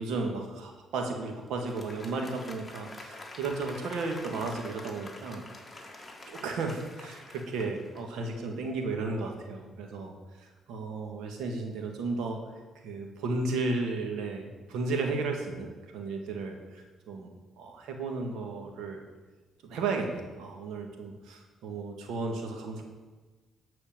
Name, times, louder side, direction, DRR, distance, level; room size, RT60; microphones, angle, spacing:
voice 1, 0.0-5.5 5.8-12.4 12.8-17.3 17.6-19.0 19.6-22.8, right 3 dB, 85° right, 3 dB, 1.7 m, -34 dB
Applause, 1.5-8.5, left 2 dB, 15° left, 1.9 m, -47 dB
12.5 x 4.4 x 7.5 m, 1.3 s
cardioid pair, 90°, 0 cm